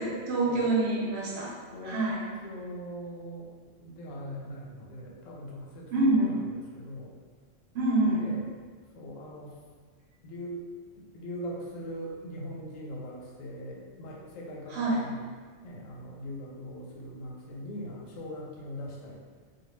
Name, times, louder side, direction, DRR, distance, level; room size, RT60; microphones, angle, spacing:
voice 1, 0.0-1.6 1.8-2.2 5.9-6.3 7.7-8.3 14.7-15.1, right 2 dB, 60° right, -4 dB, 0.8 m, -26 dB
voice 2, 1.7-2.0 2.4-3.5 3.8-6.4 6.7-7.1 8.2-8.5 8.9-9.6 10.2-10.6 11.0-15.3 15.6-19.2, equal, 90° left, -2 dB, 1.0 m, -41 dB
2.2 x 2.2 x 3.1 m, 1.5 s
omnidirectional pair, 1.3 m